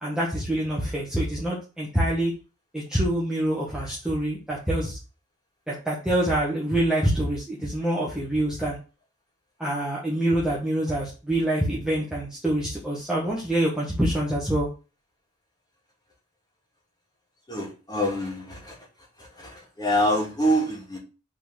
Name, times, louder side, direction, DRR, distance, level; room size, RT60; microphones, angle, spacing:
voice 1, 0.0-2.3 2.7-5.0 5.7-8.8 9.6-14.7, right 1 dB, 5° right, -6 dB, 1.7 m, -26 dB
voice 2, 17.5-18.7 19.2-21.0, equal, 20° left, -2 dB, 2.8 m, -26 dB
6.2 x 4.4 x 6.5 m, 0.33 s
head